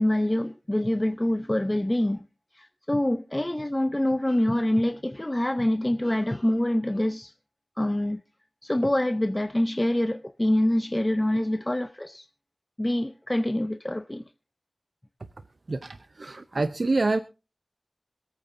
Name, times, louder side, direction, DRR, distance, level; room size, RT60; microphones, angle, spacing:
voice 1, 0.0-2.3 2.5-7.3 7.8-8.2 8.6-12.3 12.8-14.2, left 1 dB, 25° left, 0.7 m, -25 dB
voice 2, 15.7-17.2, right 3 dB, 75° right, 0.6 m, -26 dB
26.0 x 9.0 x 2.7 m
wide cardioid pair, 50°, 0 cm